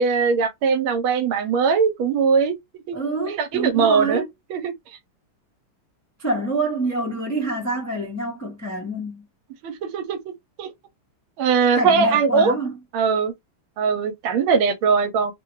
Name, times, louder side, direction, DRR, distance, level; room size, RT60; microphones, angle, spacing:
voice 1, 0.0-2.6 2.9-3.0 3.3-4.2 4.5-4.7 9.6-10.2 10.6-10.7 11.4-12.5 12.9-13.3 13.8-15.3, right 5 dB, 80° right, 1.4 m, -20 dB
voice 2, 2.9-4.2 6.2-9.2 11.7-12.8, right 2 dB, 20° left, 0.4 m, -26 dB
3.6 x 2.2 x 3.1 m
omnidirectional pair, 2.4 m